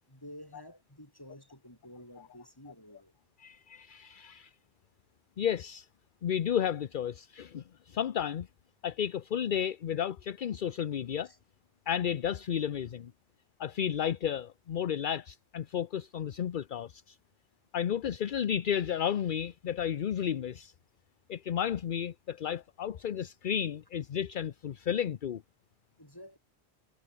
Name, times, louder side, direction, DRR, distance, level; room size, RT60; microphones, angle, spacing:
voice 1, 0.1-3.1 11.2-11.4 26.0-26.4, equal, 20° left, 6.8 m, -50 dB
voice 2, 3.4-4.5 5.4-5.9 6.2-8.5 8.8-11.3 11.9-13.1 13.6-17.2 17.7-20.7 21.3-25.4, left 9 dB, 55° left, 0.8 m, -32 dB
omnidirectional pair, 1.1 m